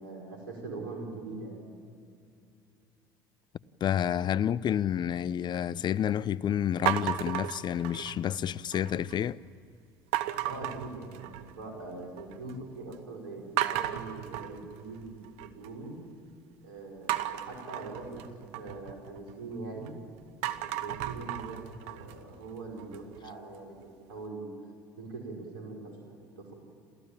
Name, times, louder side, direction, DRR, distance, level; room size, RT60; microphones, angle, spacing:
voice 1, 0.0-1.6 10.4-15.9 16.6-18.2 18.6-19.9 20.4-24.5 25.0-26.5, right 3 dB, 85° right, 5.4 m, -42 dB
voice 2, 3.8-9.4, left 10 dB, 40° left, 0.6 m, -29 dB
sound 1, 6.9-8.3 8.7-9.2 10.1-11.7 12.0-12.5 12.9-13.0 13.6-15.7 17.1-19.9 20.3-23.2, right 14 dB, 65° right, 1.1 m, -34 dB
28.5 x 15.0 x 8.9 m
hypercardioid pair, 70°, 11 cm